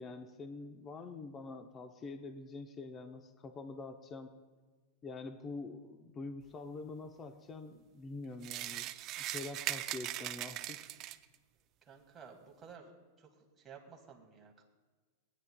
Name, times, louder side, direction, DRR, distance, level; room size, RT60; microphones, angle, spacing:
voice 1, 0.0-4.3 5.0-8.9 9.2-10.9, left 3 dB, 20° left, 7 dB, 0.6 m, -45 dB
sound 1, 8.4-11.3, right 14 dB, 35° right, 0.3 m, -40 dB
voice 2, 11.8-12.9 13.2-13.3 13.6-14.6, right 6 dB, 20° right, 1 dB, 1.5 m, -54 dB
18.0 x 9.8 x 2.2 m, 1.4 s
supercardioid pair, 145°, 0 cm